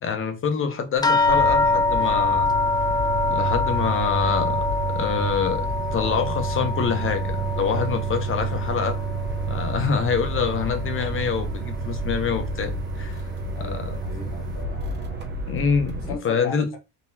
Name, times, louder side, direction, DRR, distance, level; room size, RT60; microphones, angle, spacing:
voice 1, 0.0-2.5 3.3-9.0 9.5-13.2 13.6-14.0 15.5-16.7, left 6 dB, 35° left, 0.9 m, -26 dB
sound 1, 1.0-9.9 10.2-11.0 11.8-11.9 12.3-12.5, left 3 dB, 10° left, 0.3 m, -25 dB
sound 2, 1.2-16.2, right 3 dB, 30° right, 1.0 m, -29 dB
voice 2, 13.5-15.3 16.1-16.8, left 5 dB, 80° left, 1.0 m, -38 dB
3.9 x 2.9 x 2.8 m
cardioid pair, 110°, 34 cm